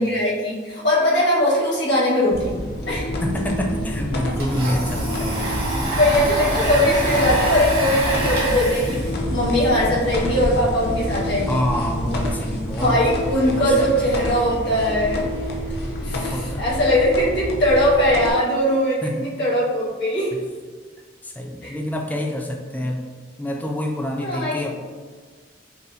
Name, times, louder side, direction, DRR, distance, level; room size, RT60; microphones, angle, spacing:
voice 1, 0.0-3.2 6.0-11.6 12.7-15.3 16.0-20.4 21.6-21.8 24.2-24.8, left 1 dB, 90° left, -6 dB, 1.3 m, -20 dB
sound 1, 2.3-18.3, equal, 60° left, 0.6 m, -27 dB
voice 2, 3.2-5.6 7.2-7.4 11.5-13.1 13.4-14.1 16.1-16.7 19.0-19.3 20.3-20.4 21.2-23.0 23.4-24.7, left 1 dB, 10° left, 1 dB, 0.3 m, -27 dB
Domestic sounds home sounds, 4.3-10.5, right 1 dB, 55° right, 1.3 m, -27 dB
5.3 x 2.0 x 2.7 m, 1.5 s
head